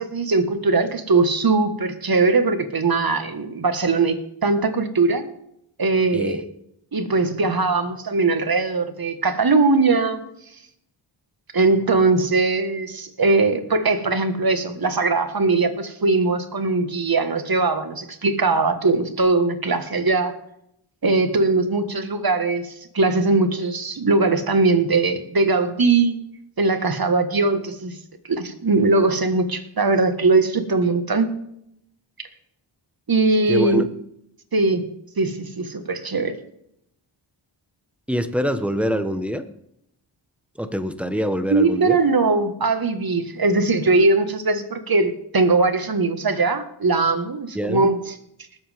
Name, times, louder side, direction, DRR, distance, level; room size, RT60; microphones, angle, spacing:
voice 1, 0.0-5.2 5.8-6.4 6.9-10.2 11.5-20.3 21.0-26.2 26.6-27.9 28.3-31.3 33.1-33.8 34.5-34.9 35.2-36.4 41.5-48.1, right 3 dB, 45° right, 8 dB, 1.8 m, -20 dB
voice 2, 33.5-33.9 38.1-39.4 40.6-42.0 47.5-47.8, equal, 5° right, 9 dB, 1.3 m, -25 dB
19.5 x 7.8 x 3.6 m, 0.75 s
cardioid pair, 45°, 49 cm